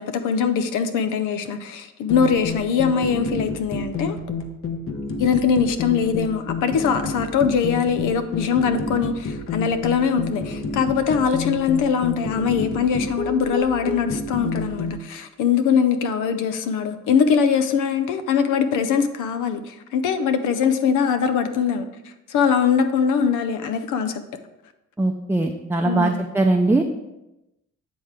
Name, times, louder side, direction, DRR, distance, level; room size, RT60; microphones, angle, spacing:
voice 1, 0.0-4.2 5.2-21.9 22.3-24.2 25.8-26.2, left 6 dB, 85° left, 9 dB, 0.7 m, -22 dB
sound 1, 2.1-15.0, left 3 dB, 45° left, 0.9 m, -29 dB
voice 2, 25.0-26.9, right 2 dB, 5° right, 1 dB, 0.5 m, -20 dB
9.0 x 3.4 x 4.9 m, 0.94 s
cardioid pair, 90°, 30 cm